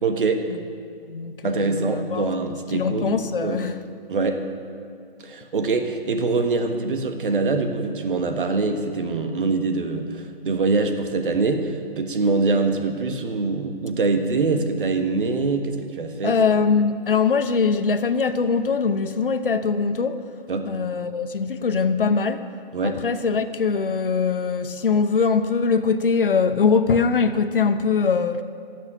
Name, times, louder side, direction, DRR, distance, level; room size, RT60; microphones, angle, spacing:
voice 1, 0.0-0.4 1.4-3.7 4.1-4.4 5.2-16.3 20.5-20.7 22.7-23.0, right 3 dB, 55° right, 1.4 m, -24 dB
voice 2, 1.1-2.3 2.7-3.8 16.2-20.3 20.6-22.5 22.8-28.4, left 5 dB, 60° left, 0.9 m, -22 dB
14.5 x 6.5 x 9.2 m
figure-of-eight pair, 140°, 30 cm